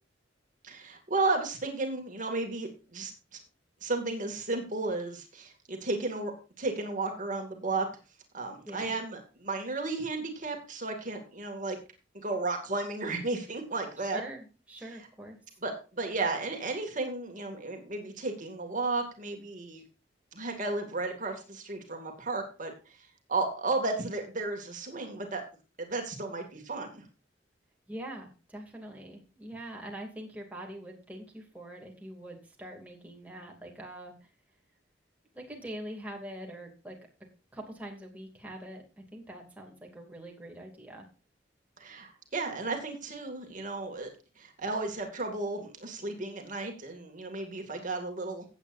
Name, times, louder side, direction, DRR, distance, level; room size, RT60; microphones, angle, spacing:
voice 1, 0.6-3.4 3.8-6.3 6.6-7.9 8.3-11.8 12.1-14.2 15.6-19.8 20.3-23.0 23.3-25.4 25.8-27.0 41.8-44.1 44.4-48.4, right 3 dB, 45° right, 4 dB, 2.3 m, -33 dB
voice 2, 8.7-9.0 14.1-15.4 27.9-34.1 35.3-37.0 37.5-41.1, right 1 dB, 10° right, 0 dB, 2.6 m, -44 dB
16.5 x 8.4 x 2.6 m, 0.32 s
head